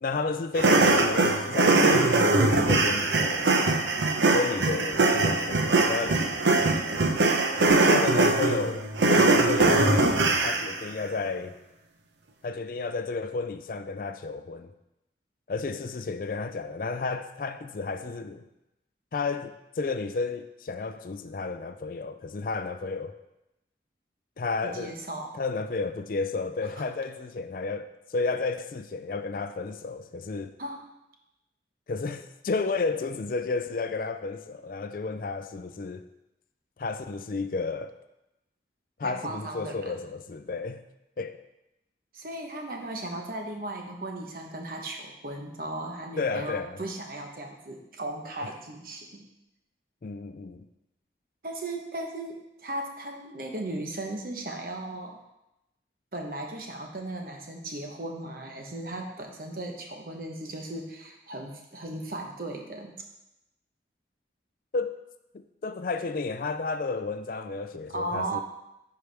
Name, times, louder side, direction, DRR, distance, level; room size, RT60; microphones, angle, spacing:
voice 1, 0.0-3.6 4.3-6.2 7.8-11.5 12.4-14.7 15.5-18.5 19.1-23.2 24.4-24.9 25.4-30.5 31.9-36.0 36.8-37.9 39.0-40.8 41.2-41.4 46.2-46.8 50.0-50.7 64.7-64.9 65.3-68.4, left 4 dB, 50° left, 10 dB, 0.4 m, -32 dB
sound 1, 0.6-10.8, right 2 dB, 90° right, 0.7 m, -22 dB
voice 2, 24.6-25.4 30.6-30.9 39.0-39.9 42.1-49.3 51.4-55.2 56.1-62.9 67.9-68.4, right 2 dB, 50° right, 2 dB, 1.0 m, -36 dB
10.0 x 4.7 x 3.4 m, 0.91 s
head